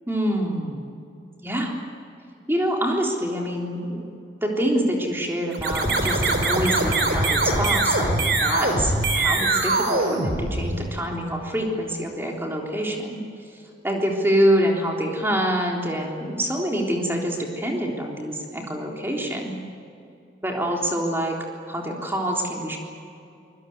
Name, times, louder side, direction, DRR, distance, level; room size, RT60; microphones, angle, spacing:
voice 1, 0.1-0.9 1.4-1.7 2.5-4.0 4.4-13.2 13.5-19.5 20.4-21.4 21.7-22.8, equal, 15° right, 0 dB, 3.6 m, -26 dB
sound 1, 5.5-11.0, right 2 dB, 60° right, 3.9 m, -22 dB
24.5 x 20.5 x 9.5 m, 2.7 s
head